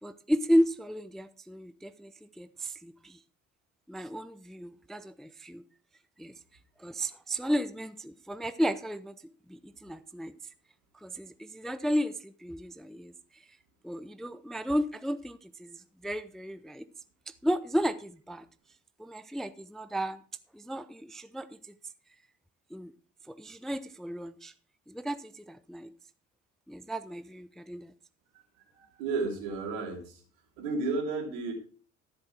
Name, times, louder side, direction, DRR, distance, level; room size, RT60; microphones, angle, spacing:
voice 1, 0.0-3.2 3.9-5.6 6.2-6.3 6.8-9.1 9.5-10.3 10.9-13.5 13.8-16.9 17.3-18.5 19.0-20.2 20.5-21.7 22.7-22.9 23.3-24.5 24.9-25.9 26.7-27.9, equal, ahead, 0.5 m, -33 dB
voice 2, 28.7-30.2 30.6-31.5, right 3 dB, 65° right, 3.1 m, -33 dB
13.5 x 7.8 x 4.7 m
figure-of-eight pair, 50°, 39 cm